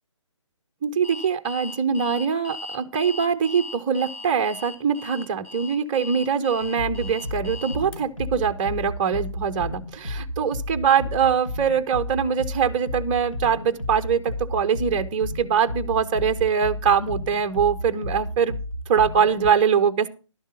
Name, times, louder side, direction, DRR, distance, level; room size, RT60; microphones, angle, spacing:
voice 1, 0.8-18.5 18.9-20.1, right 7 dB, 15° right, 8 dB, 0.5 m, -23 dB
Alarm, 1.0-8.0, left 3 dB, 20° left, 2.2 m, -38 dB
sound 1, 6.6-19.5, left 1 dB, 85° left, 2.3 m, -33 dB
11.5 x 7.2 x 5.6 m, 0.34 s
figure-of-eight pair, 145°, 17 cm